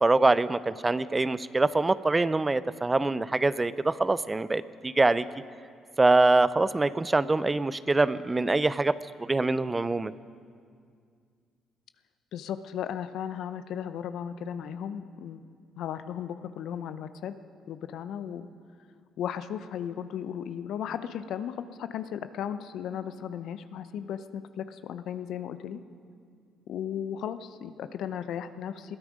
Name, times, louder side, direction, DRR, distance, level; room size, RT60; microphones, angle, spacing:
voice 1, 0.0-5.3 6.0-9.0 9.3-10.1, right 2 dB, 25° right, 16 dB, 0.6 m, -24 dB
voice 2, 12.3-15.5 15.8-17.4 17.7-18.5 19.2-25.8 26.7-29.0, left 9 dB, 70° left, 11 dB, 0.7 m, -36 dB
21.0 x 13.5 x 5.1 m, 2.2 s
hypercardioid pair, 55°, 0 cm